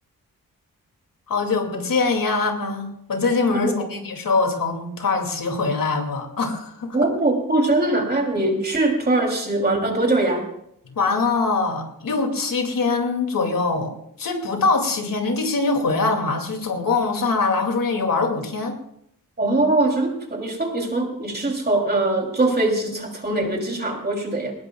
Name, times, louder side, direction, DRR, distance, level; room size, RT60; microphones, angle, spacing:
voice 1, 1.3-7.0 10.9-13.9 14.2-18.8, left 4 dB, 70° left, 3 dB, 2.5 m, -23 dB
voice 2, 3.5-3.9 6.9-10.4 19.4-24.5, right 2 dB, 30° right, 1 dB, 3.0 m, -22 dB
20.0 x 19.5 x 2.3 m, 0.74 s
wide cardioid pair, 145°, 34 cm